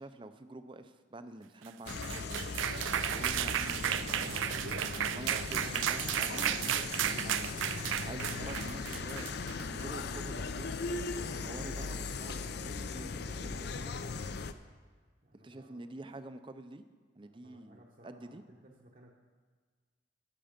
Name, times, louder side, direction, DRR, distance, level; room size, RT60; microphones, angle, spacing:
voice 1, 0.0-4.7 5.1-7.7 8.1-10.8 11.2-13.9 15.4-16.8 17.1-18.4, right 2 dB, 25° right, 10 dB, 0.5 m, -48 dB
sound 1, 1.7-9.9, right 10 dB, 80° right, 0.4 m, -34 dB
sound 2, 1.9-14.5, left 4 dB, 55° left, 0.5 m, -38 dB
voice 2, 15.2-15.9 17.2-19.1, right 1 dB, 45° right, -2 dB, 1.0 m, -59 dB
14.0 x 6.8 x 5.2 m, 1.5 s
head